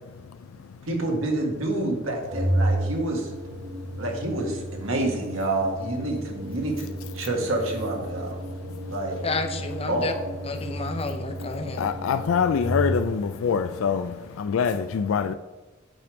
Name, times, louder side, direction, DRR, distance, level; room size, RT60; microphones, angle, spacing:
voice 1, 0.8-3.3 4.0-8.4 8.9-9.2 9.9-10.1, right 2 dB, 90° right, 1.7 m, -28 dB
Organ, 2.3-13.3, right 1 dB, 35° right, 1.3 m, -32 dB
voice 2, 9.2-10.1 10.4-11.9, left 3 dB, 30° left, 0.8 m, -30 dB
voice 3, 11.8-15.3, left 6 dB, 85° left, 0.4 m, -24 dB
8.3 x 3.5 x 6.3 m
head